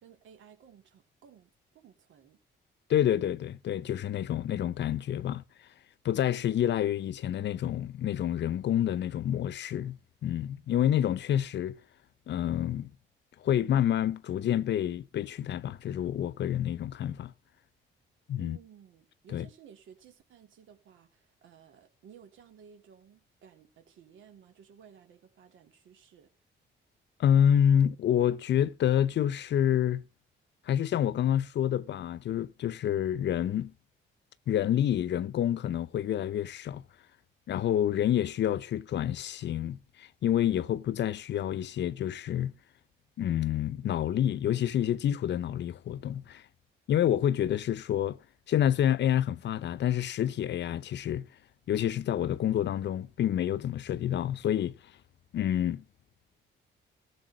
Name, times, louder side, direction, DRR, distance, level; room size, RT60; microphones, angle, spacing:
voice 1, 0.0-2.4 18.4-26.3, right 8 dB, 80° right, 3.0 m, -56 dB
voice 2, 2.9-5.4 6.0-11.8 12.3-12.9 13.4-17.3 18.3-18.6 19.3-19.4 27.2-30.0 30.7-33.7 34.5-36.8 37.5-42.5 43.2-46.4 46.9-48.2 48.5-51.3 51.7-54.7 55.3-55.8, left 10 dB, 60° left, 0.7 m, -28 dB
15.0 x 6.9 x 6.2 m
cardioid pair, 90°, 20 cm